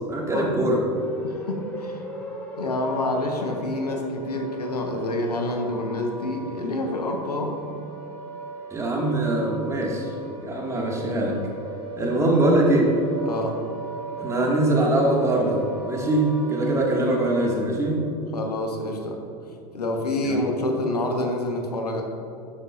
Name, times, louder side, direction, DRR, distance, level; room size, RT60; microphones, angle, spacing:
voice 1, 0.1-0.8 8.7-10.1 10.4-11.4 12.0-12.8 14.2-18.0 20.2-20.5, right 1 dB, 15° right, -2 dB, 2.0 m, -22 dB
sound 1, 0.9-17.6, right 3 dB, 5° left, 2.1 m, -38 dB
voice 2, 1.2-2.0 2.5-7.6 12.0-12.3 13.2-13.6 18.3-19.2 19.7-22.0, left 1 dB, 75° left, 3 dB, 1.2 m, -27 dB
12.5 x 9.6 x 2.6 m, 2.8 s
figure-of-eight pair, 85°, 20 cm